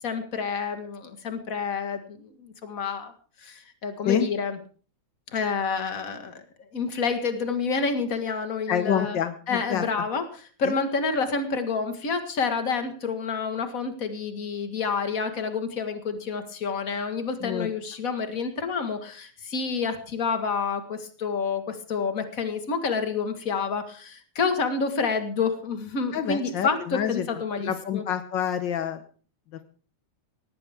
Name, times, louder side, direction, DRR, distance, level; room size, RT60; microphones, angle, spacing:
voice 1, 0.0-3.1 3.4-4.6 5.3-6.4 6.7-9.2 9.5-10.2 10.6-28.0, left 5 dB, 35° left, 8 dB, 1.6 m, -28 dB
voice 2, 8.7-9.8 10.6-10.8 17.4-17.7 26.1-27.3 27.6-29.0, left 8 dB, 80° left, 9 dB, 1.0 m, -27 dB
18.5 x 15.5 x 3.6 m, 0.41 s
omnidirectional pair, 3.4 m